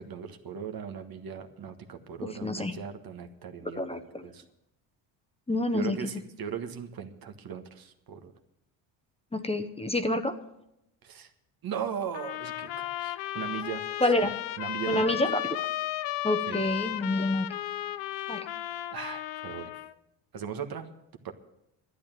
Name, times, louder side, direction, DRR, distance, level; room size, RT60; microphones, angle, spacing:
voice 1, 0.0-4.4 5.7-8.3 11.0-11.3 11.6-13.8 14.2-14.3 14.6-15.0 16.5-16.6 18.9-19.7 20.3-20.9 21.2-21.3, right 8 dB, 55° right, 5 dB, 1.5 m, -38 dB
voice 2, 2.2-2.7 3.8-4.2 5.5-6.0 9.3-10.3 14.0-14.3 14.9-15.4 16.2-17.5 18.3-18.4, left 1 dB, 15° left, 8 dB, 1.0 m, -27 dB
sound 1, 12.1-19.9, left 14 dB, 80° left, 0.7 m, -34 dB
12.0 x 9.0 x 9.0 m, 0.85 s
supercardioid pair, 80°, 44 cm